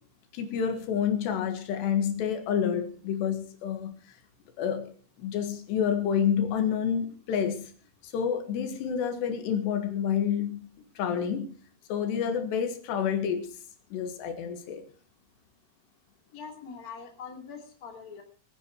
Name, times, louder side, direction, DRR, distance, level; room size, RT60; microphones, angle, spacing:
voice 1, 0.3-4.0 4.6-7.7 8.0-10.7 11.0-11.6 11.9-13.5 13.9-14.8, left 8 dB, 80° left, 7 dB, 3.9 m, -29 dB
voice 2, 16.3-18.2, left 6 dB, 25° left, 3 dB, 2.6 m, -43 dB
22.5 x 10.0 x 4.6 m, 0.38 s
omnidirectional pair, 4.8 m